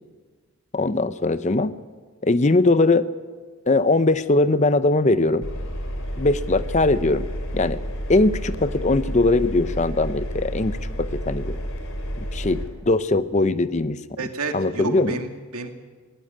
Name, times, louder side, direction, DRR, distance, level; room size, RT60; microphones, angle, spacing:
voice 1, 0.7-1.7 2.2-3.1 3.7-5.5 6.2-7.3 7.5-7.8 8.1-11.6 12.3-14.2 14.5-15.2, left 2 dB, 30° left, 14 dB, 0.6 m, -20 dB
Engine, 5.4-12.7, equal, 70° left, 3.3 m, -30 dB
voice 2, 14.2-15.7, right 3 dB, 85° right, 5 dB, 2.3 m, -30 dB
19.5 x 16.0 x 9.9 m, 1.4 s
head